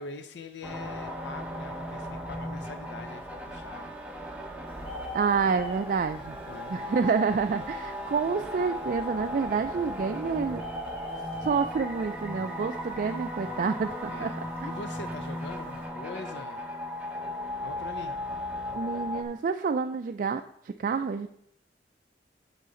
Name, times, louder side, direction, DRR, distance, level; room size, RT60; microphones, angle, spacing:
voice 1, 0.0-3.9 6.2-7.0 14.1-16.7 17.6-18.2, left 3 dB, 75° left, 9 dB, 0.5 m, -43 dB
sound 1, 0.6-19.2, left 1 dB, 10° right, 0.9 m, -37 dB
Bird, 4.7-15.9, left 1 dB, 30° left, 1.7 m, -45 dB
voice 2, 5.1-6.4 6.7-10.6 11.4-14.3 18.7-21.3, right 5 dB, 50° right, 8 dB, 0.3 m, -28 dB
9.0 x 6.6 x 3.8 m, 0.75 s
head